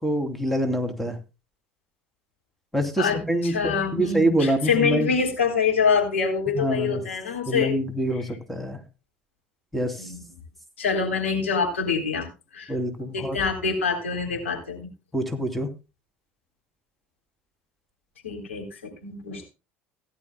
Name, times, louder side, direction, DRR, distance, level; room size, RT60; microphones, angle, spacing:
voice 1, 0.0-1.2 2.7-5.1 6.5-7.0 7.5-8.8 9.7-10.1 12.7-13.4 15.1-15.7, right 1 dB, ahead, 6 dB, 3.0 m, -25 dB
voice 2, 3.0-7.8 10.0-10.2 10.8-12.3 12.5-12.7 13.1-14.9 18.2-18.7 19.0-19.5, left 5 dB, 85° left, 2 dB, 3.7 m, -25 dB
17.5 x 11.0 x 2.3 m, 0.29 s
hypercardioid pair, 65°, 7 cm